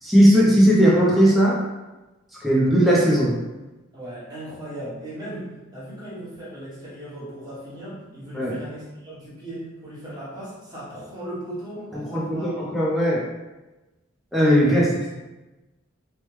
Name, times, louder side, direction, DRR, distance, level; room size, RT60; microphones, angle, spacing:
voice 1, 0.0-1.6 2.4-3.4 8.3-8.5 11.9-13.2 14.3-15.1, equal, ahead, -6 dB, 0.4 m, -18 dB
voice 2, 3.9-12.7 14.7-15.1, right 1 dB, 20° right, -9 dB, 1.0 m, -37 dB
3.1 x 2.1 x 3.1 m, 1.1 s
head